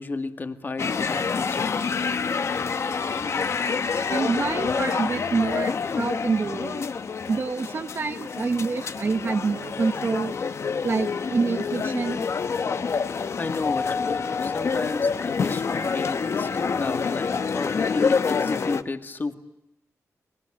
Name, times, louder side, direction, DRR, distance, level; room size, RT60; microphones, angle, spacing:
voice 1, 0.0-1.8 13.4-19.4, left 3 dB, 35° left, 8 dB, 2.0 m, -32 dB
sound 1, 0.8-18.8, left 5 dB, 55° left, 1.1 m, -27 dB
voice 2, 4.1-6.8 7.3-10.3 10.8-12.3, right 4 dB, 45° right, 7 dB, 1.1 m, -27 dB
29.0 x 23.5 x 8.7 m, 0.89 s
wide cardioid pair, 145°, 6 cm